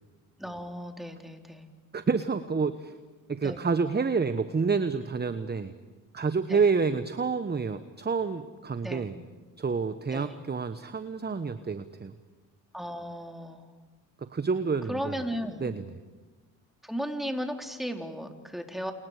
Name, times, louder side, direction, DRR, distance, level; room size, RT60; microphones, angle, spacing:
voice 1, 0.4-1.7 3.4-3.6 6.5-6.7 8.8-9.1 10.1-10.4 12.7-13.7 14.9-15.7 16.8-18.9, equal, ahead, 3 dB, 3.9 m, -35 dB
voice 2, 1.9-2.9 3.3-5.7 6.1-9.1 9.6-12.1 14.2-15.1 15.6-15.8, right 5 dB, 20° right, 11 dB, 1.2 m, -28 dB
29.5 x 29.0 x 5.1 m, 1.3 s
hypercardioid pair, 55°, 49 cm